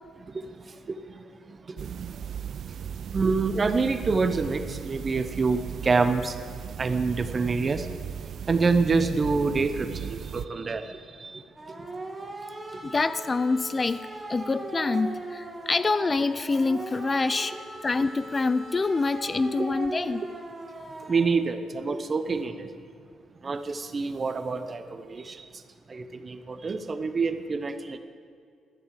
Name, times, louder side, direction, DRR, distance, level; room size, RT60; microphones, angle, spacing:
voice 1, 0.2-2.3 3.1-6.4 6.8-11.4 11.7-11.9 12.7-12.9 19.6-19.7 21.1-22.7 23.4-25.6 25.9-28.0, right 4 dB, 35° right, 10 dB, 0.9 m, -27 dB
sound 1, 1.8-10.5, right 8 dB, 60° right, 0.4 m, -37 dB
sound 2, 11.6-21.3, right 2 dB, 15° right, 1.8 m, -39 dB
voice 2, 12.8-17.5 17.8-20.3, left 3 dB, 30° left, 14 dB, 0.4 m, -26 dB
13.5 x 7.9 x 7.6 m, 2.3 s
cardioid pair, 90°, 0 cm